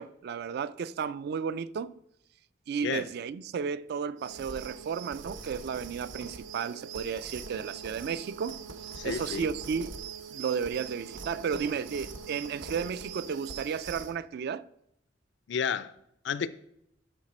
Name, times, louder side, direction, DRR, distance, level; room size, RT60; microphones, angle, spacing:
voice 1, 0.0-1.9 2.7-8.6 9.0-10.0 10.3-14.7, right 6 dB, 55° right, 0.3 m, -33 dB
sound 1, 4.2-14.1, right 5 dB, 85° right, 0.8 m, -42 dB
voice 2, 9.0-9.5 15.5-15.9 16.2-16.5, left 6 dB, 65° left, 0.4 m, -31 dB
11.5 x 4.0 x 4.2 m
head